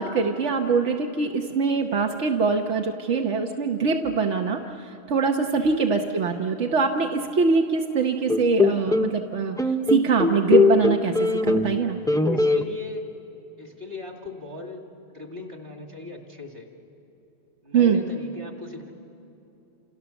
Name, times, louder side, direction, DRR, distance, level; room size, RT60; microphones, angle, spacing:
voice 1, 0.0-4.6 5.1-9.6 9.9-12.0 17.7-18.0, right 5 dB, 85° right, 2 dB, 1.3 m, -23 dB
sound 1, 8.3-9.1 9.6-11.8 12.1-12.6, left 3 dB, 5° left, 0.3 m, -21 dB
voice 2, 12.1-13.0 13.6-14.8 15.1-16.7 17.6-18.9, left 4 dB, 55° right, 3 dB, 2.6 m, -37 dB
29.0 x 28.0 x 7.0 m, 2.8 s
omnidirectional pair, 1.2 m